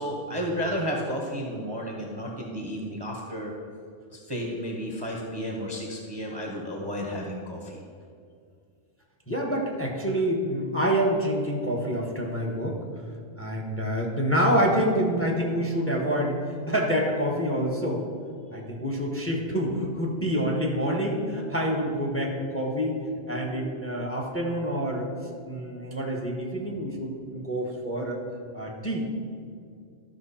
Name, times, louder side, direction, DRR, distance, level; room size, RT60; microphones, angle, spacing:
voice 1, 0.0-3.5 4.1-7.8, equal, 20° right, -1 dB, 1.0 m, -32 dB
voice 2, 9.3-12.8 13.4-18.0 18.5-23.0 23.3-25.1 25.4-28.2 28.5-29.0, equal, 10° left, 0 dB, 1.2 m, -27 dB
13.0 x 6.0 x 4.3 m, 2.2 s
omnidirectional pair, 1.3 m